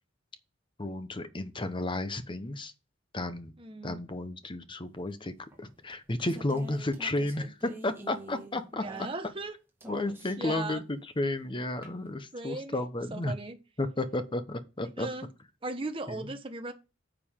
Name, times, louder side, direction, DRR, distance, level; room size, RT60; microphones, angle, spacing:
voice 1, 0.8-2.7 3.1-3.5 3.8-9.1 9.9-13.3 13.8-15.1 16.1-16.3, left 2 dB, 25° left, 1.0 m, -33 dB
voice 2, 3.6-4.0 8.7-9.5 10.4-10.8 12.3-12.8 13.1-13.6 15.0-15.3 15.6-16.7, right 2 dB, 30° right, 1.2 m, -37 dB
sound 1, 5.5-9.5 9.8-10.5 11.8-11.9, right 2 dB, 10° right, 2.0 m, -46 dB
9.9 x 6.8 x 3.7 m
head